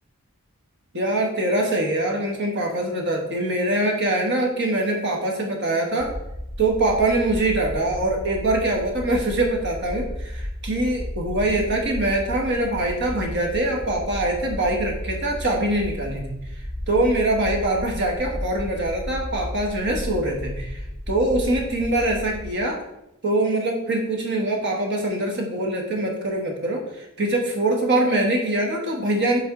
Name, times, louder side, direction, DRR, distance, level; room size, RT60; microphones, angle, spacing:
voice 1, 0.9-6.1 6.6-16.3 16.9-20.8 21.1-22.8 23.2-29.4, right 1 dB, 50° right, 1 dB, 1.3 m, -23 dB
sound 1, 6.0-22.5, equal, ahead, 0.4 m, -33 dB
7.7 x 3.5 x 3.8 m, 0.87 s
head